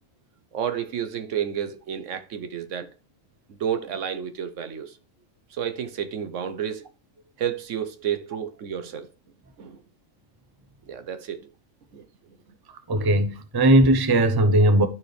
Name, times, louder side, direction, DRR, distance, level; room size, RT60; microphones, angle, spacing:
voice 1, 0.5-2.9 3.6-5.0 5.5-6.9 7.4-9.1 9.6-9.8 10.9-11.4 11.9-12.0, right 9 dB, 65° right, 1.0 m, -30 dB
voice 2, 12.9-14.9, right 1 dB, 25° right, 0.6 m, -18 dB
12.0 x 4.3 x 3.3 m
omnidirectional pair, 1.4 m